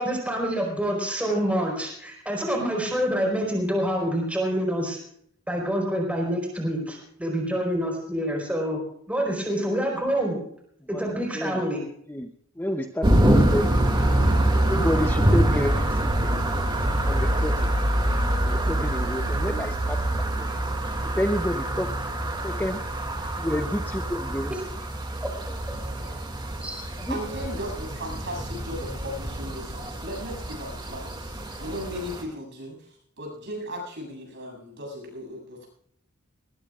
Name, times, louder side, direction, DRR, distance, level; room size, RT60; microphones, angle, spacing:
voice 1, 0.0-5.0 5.5-8.8 9.1-10.4 10.9-11.8 25.7-25.8 26.6-26.8, equal, 5° right, 0 dB, 4.4 m, -27 dB
voice 2, 10.9-11.6 12.1-13.9 14.7-16.3 17.0-17.7 18.3-20.5 21.0-21.9 22.4-22.8 23.4-24.6 25.5-25.6 27.0-27.2, left 1 dB, 10° left, 6 dB, 0.7 m, -30 dB
sound 1, 13.0-32.2, right 1 dB, 20° right, 2.3 m, -25 dB
voice 3, 27.1-32.9 33.2-35.7, equal, 55° right, 1 dB, 7.8 m, -36 dB
21.0 x 20.0 x 2.4 m, 0.68 s
head